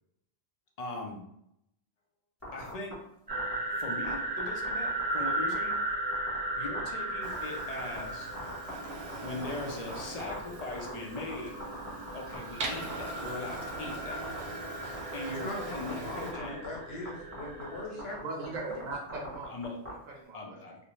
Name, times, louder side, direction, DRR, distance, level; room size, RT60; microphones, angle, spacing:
voice 1, 0.8-1.2 2.5-3.0 3.8-5.8 6.6-8.3 9.2-11.5 12.1-14.2 15.1-16.6 19.5-19.8 20.3-20.8, left 2 dB, 50° left, 1 dB, 0.5 m, -40 dB
sound 1, 2.4-2.9 3.3-3.5 4.0-5.3 5.5-5.7 6.1-6.4 6.7-6.9 7.2-8.0 8.3-11.3 11.6-12.4 12.6-13.2 13.5-14.4 14.8-15.4 15.7-15.9 16.3-16.8 17.1-17.2 17.3-17.7 18.0-19.9, equal, 15° left, 0.9 m, -42 dB
sound 2, 3.3-17.9, right 2 dB, 30° right, 0.4 m, -36 dB
Printer, 7.2-16.3, right 3 dB, 75° right, 0.9 m, -42 dB
voice 2, 15.3-18.9, left 2 dB, 70° left, -1 dB, 0.9 m, -40 dB
voice 3, 17.9-20.7, right 3 dB, 50° right, -2 dB, 0.8 m, -40 dB
2.5 x 2.1 x 2.9 m, 0.77 s
omnidirectional pair, 1.1 m